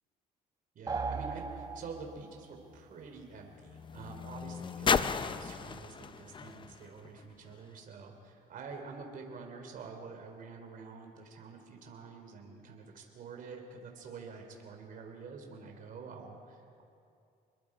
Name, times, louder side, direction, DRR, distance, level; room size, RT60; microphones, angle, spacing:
voice 1, 0.7-16.8, right 4 dB, 55° right, 2 dB, 3.4 m, -47 dB
sound 1, 0.9-2.4, right 4 dB, 25° right, 1.0 m, -37 dB
sound 2, 1.4-7.8 8.7-8.8, left 6 dB, 30° left, 0.6 m, -36 dB
26.5 x 21.5 x 5.0 m, 2.5 s
cardioid pair, 110°, 17 cm